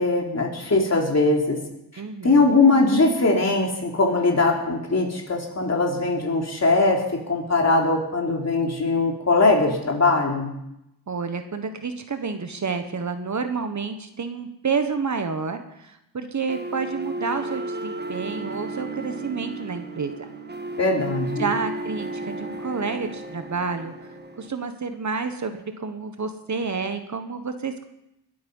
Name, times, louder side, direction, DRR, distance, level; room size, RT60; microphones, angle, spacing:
voice 1, 0.0-1.6 2.2-10.5 20.8-21.5, left 3 dB, 40° left, 0 dB, 3.5 m, -21 dB
voice 2, 2.0-2.6 11.1-20.1 21.4-23.9 24.4-27.8, right 5 dB, 45° right, 8 dB, 1.3 m, -29 dB
sound 1, 16.5-24.5, right 2 dB, 25° right, 1.5 m, -34 dB
21.0 x 8.6 x 5.5 m, 0.84 s
cardioid pair, 90°, 41 cm